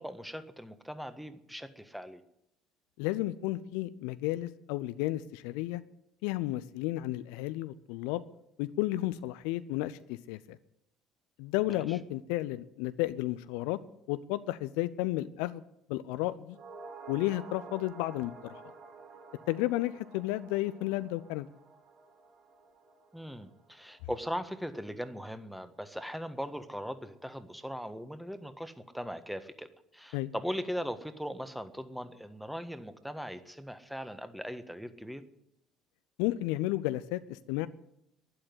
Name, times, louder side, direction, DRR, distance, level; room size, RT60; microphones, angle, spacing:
voice 1, 0.0-2.2 11.7-11.8 23.1-35.2, equal, ahead, 10 dB, 1.5 m, -39 dB
voice 2, 3.0-5.8 6.2-8.2 8.6-10.6 11.4-13.8 14.1-15.6 15.9-16.6 17.1-18.6 19.5-21.5 30.1-30.3 36.2-37.7, left 16 dB, 65° left, 15 dB, 0.5 m, -32 dB
sound 1, 16.5-25.0 25.3-25.4, right 4 dB, 55° right, 4.1 m, -51 dB
11.5 x 11.0 x 9.6 m, 0.80 s
figure-of-eight pair, 55°, 0 cm